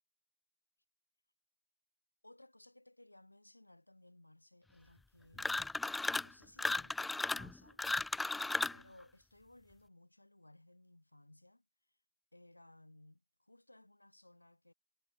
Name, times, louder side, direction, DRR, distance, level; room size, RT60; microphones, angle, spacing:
voice 1, 2.2-5.7 6.2-7.8 8.7-11.6 12.3-14.7, left 1 dB, 85° left, 3.8 m, -61 dB
sound 1, 5.4-6.3 6.6-8.8, left 2 dB, 10° left, 0.3 m, -35 dB
figure-of-eight pair, 90°, 0 cm